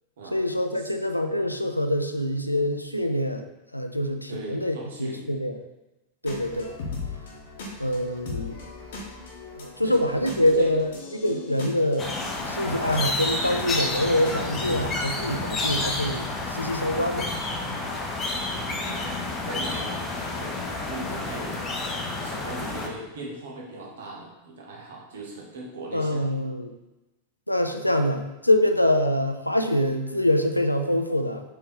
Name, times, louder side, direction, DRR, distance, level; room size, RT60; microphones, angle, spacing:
voice 1, 0.3-3.5 3.7-5.6 6.2-6.7 7.8-8.6 9.6-12.1 12.5-17.3 25.9-26.7 27.5-31.4, left 1 dB, 90° left, 6 dB, 0.3 m, -25 dB
voice 2, 4.3-5.3 9.8-10.0 10.4-10.7 11.2-11.7 18.5-21.6 21.9-26.3, right 2 dB, 60° right, -1 dB, 1.1 m, -39 dB
sound 1, 6.2-15.2, left 3 dB, 60° left, 0.9 m, -40 dB
sound 2, 12.0-22.9, left 2 dB, 25° left, 0.7 m, -30 dB
4.3 x 3.1 x 3.5 m, 1.0 s
figure-of-eight pair, 90°, 0 cm